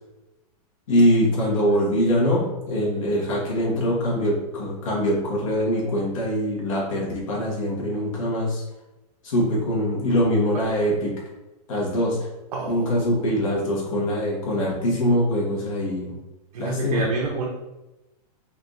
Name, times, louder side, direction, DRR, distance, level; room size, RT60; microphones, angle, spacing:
voice 1, 0.9-8.6 9.2-11.1 11.7-12.2 12.7-16.1 16.6-17.0, equal, 55° left, -4 dB, 1.2 m, -23 dB
voice 2, 12.5-13.2 16.5-17.5, right 3 dB, 85° right, -1 dB, 0.6 m, -28 dB
3.6 x 2.4 x 2.5 m, 1.0 s
supercardioid pair, 180°, 20 cm